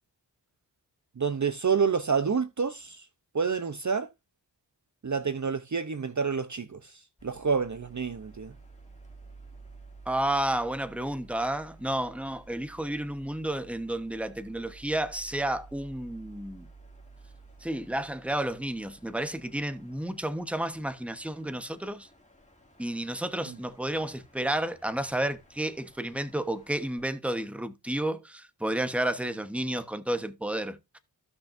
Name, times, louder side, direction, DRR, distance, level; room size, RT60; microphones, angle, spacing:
voice 1, 1.2-3.0 3.3-4.1 5.0-6.9 7.2-8.5 23.5-23.6, right 5 dB, 40° right, 0.8 m, -28 dB
sound 1, 7.2-27.1, right 3 dB, 15° left, 2.6 m, -53 dB
voice 2, 10.1-16.7 17.6-22.1 22.8-31.0, right 1 dB, 5° right, 1.1 m, -31 dB
16.0 x 5.9 x 2.6 m
wide cardioid pair, 60°, 44 cm